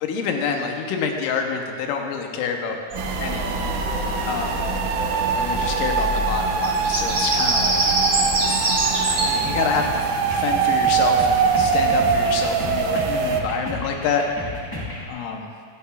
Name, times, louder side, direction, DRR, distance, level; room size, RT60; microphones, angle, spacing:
voice 1, 0.0-2.8 3.2-3.7 4.2-4.6 5.4-8.0 9.1-10.1 10.3-14.2 15.1-15.5, left 6 dB, 85° left, 3 dB, 2.5 m, -27 dB
Bird vocalization bird call bird song, 2.9-9.3, right 1 dB, 35° right, 1.6 m, -25 dB
sound 1, 3.0-13.4, right 6 dB, 80° right, 2.2 m, -23 dB
sound 2, 9.4-15.1, left 2 dB, 25° left, 0.5 m, -33 dB
15.5 x 11.5 x 2.4 m, 2.1 s
omnidirectional pair, 3.8 m